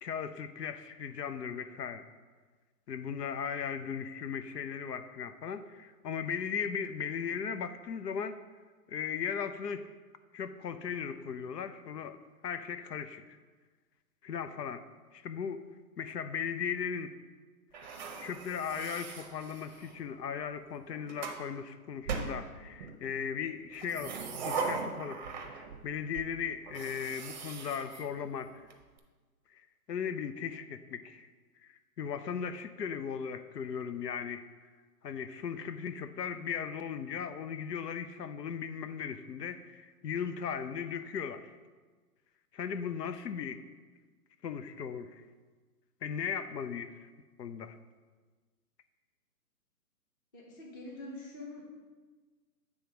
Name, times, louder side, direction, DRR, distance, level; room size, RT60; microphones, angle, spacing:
voice 1, 0.0-2.1 2.9-8.4 8.9-9.9 10.3-13.4 14.2-14.8 15.1-15.6 16.0-17.1 18.2-25.2 25.5-28.7 29.5-31.3 31.6-34.5 35.0-41.5 42.5-43.6 44.4-45.2 46.0-47.1 47.4-47.8, left 7 dB, 85° left, 11 dB, 0.7 m, -37 dB
sound 1, 17.7-20.0 20.7-21.4 22.1-23.0 23.7-25.9 26.1-26.3 26.7-28.7, right 5 dB, 30° right, 0.6 m, -39 dB
voice 2, 50.3-51.6, left 2 dB, 15° left, -2 dB, 0.6 m, -45 dB
8.8 x 3.5 x 5.1 m, 1.4 s
hypercardioid pair, 145°, 48 cm